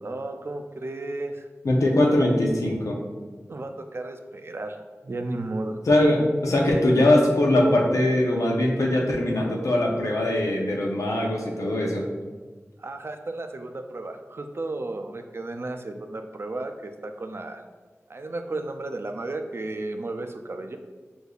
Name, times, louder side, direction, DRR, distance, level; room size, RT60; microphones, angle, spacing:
voice 1, 0.0-1.5 3.5-4.8 5.0-5.8 12.8-17.6 18.1-20.8, right 2 dB, 50° right, 6 dB, 0.4 m, -33 dB
voice 2, 1.6-3.0 5.9-12.0, left 1 dB, 85° left, -1 dB, 0.6 m, -21 dB
6.5 x 2.6 x 2.3 m, 1.4 s
wide cardioid pair, 65°, 5 cm